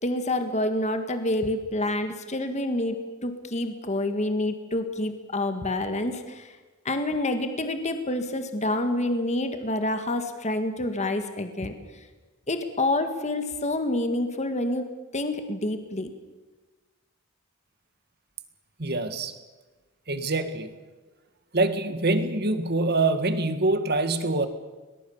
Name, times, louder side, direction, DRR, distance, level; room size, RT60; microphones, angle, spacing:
voice 1, 0.0-6.5 6.9-11.7 12.5-14.8 15.1-16.1, left 1 dB, 30° left, 7 dB, 1.8 m, -28 dB
voice 2, 18.8-19.3 20.1-20.7 21.5-24.5, right 2 dB, 50° right, 9 dB, 1.8 m, -25 dB
22.0 x 20.5 x 7.2 m, 1.2 s
head